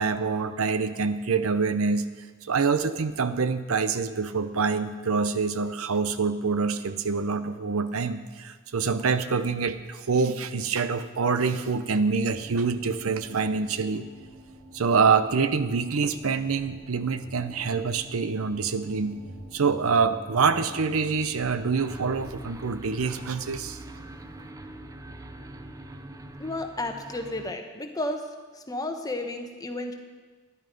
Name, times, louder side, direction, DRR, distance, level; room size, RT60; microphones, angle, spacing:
voice 1, 0.0-2.1 2.4-14.0 14.7-19.2 19.5-23.8, right 5 dB, 80° right, 11 dB, 0.7 m, -26 dB
sound 1, 12.3-26.4, right 1 dB, 50° right, 2.3 m, -47 dB
sound 2, 21.8-27.5, right 1 dB, 15° right, 0.5 m, -44 dB
voice 2, 26.4-28.2 28.5-30.0, left 2 dB, 15° left, 5 dB, 1.0 m, -32 dB
12.5 x 10.5 x 5.3 m, 1.4 s
head